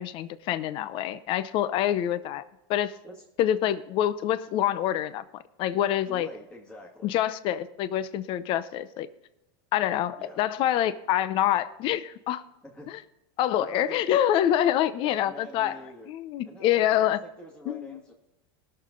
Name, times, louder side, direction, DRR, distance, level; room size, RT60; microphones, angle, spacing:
voice 1, 0.0-2.4 2.7-3.0 3.4-5.2 5.6-6.3 7.0-9.1 9.7-12.4 12.9-13.0 13.4-15.7 16.1-17.2 17.7-18.0, left 11 dB, 45° left, 14 dB, 0.7 m, -26 dB
voice 2, 6.1-7.1 10.2-10.4 12.6-12.9 13.6-14.0 15.0-16.1 16.4-18.1, equal, 10° left, -4 dB, 2.0 m, -45 dB
20.0 x 6.8 x 3.9 m, 0.95 s
supercardioid pair, 135°, 12 cm